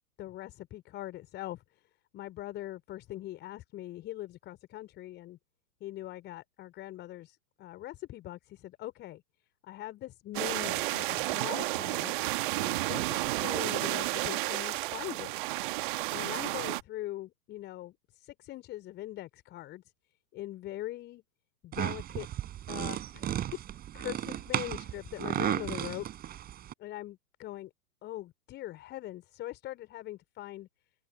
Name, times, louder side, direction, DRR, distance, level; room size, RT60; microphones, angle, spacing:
voice 1, 0.2-5.4 5.8-9.2 9.6-12.1 12.6-15.4 16.1-19.8 20.3-21.2 21.6-22.3 22.7-23.6 23.9-26.1 26.8-27.7 28.0-30.7, left 15 dB, 25° left, 5.2 m, -42 dB
sound 1, 10.3-16.8, right 20 dB, 35° right, 1.7 m, -32 dB
sound 2, 21.7-26.7, right 11 dB, 20° right, 7.0 m, -34 dB
figure-of-eight pair, 110°, 43 cm